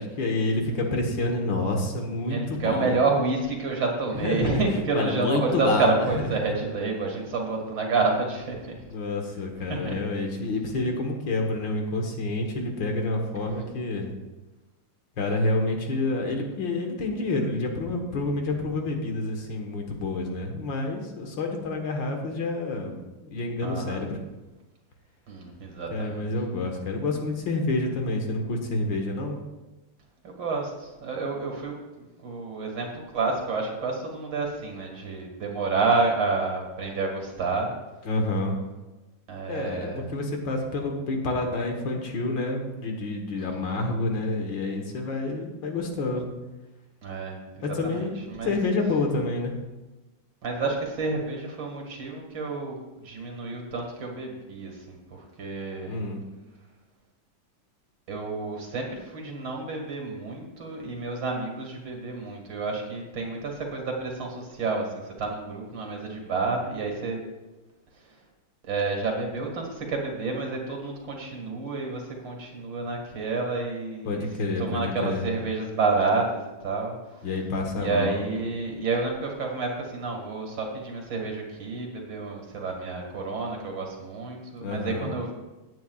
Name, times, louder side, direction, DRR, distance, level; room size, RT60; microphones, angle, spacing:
voice 1, 0.0-3.0 4.1-4.6 4.9-6.5 8.9-14.1 15.2-24.2 25.9-29.4 38.1-38.6 39.5-46.3 47.6-48.2 48.4-49.5 55.8-56.2 74.1-75.3 77.2-78.2 84.6-85.1, left 2 dB, 70° left, 2 dB, 2.0 m, -28 dB
voice 2, 2.3-8.8 9.7-10.0 13.6-13.7 23.6-24.1 25.3-26.3 30.2-32.9 33.1-37.7 39.3-40.0 43.4-43.8 47.0-48.5 50.4-56.0 58.1-67.2 68.6-74.3 74.6-77.3 77.8-85.3, right 3 dB, 70° right, 1 dB, 2.6 m, -29 dB
17.0 x 9.1 x 2.4 m, 1.1 s
omnidirectional pair, 2.1 m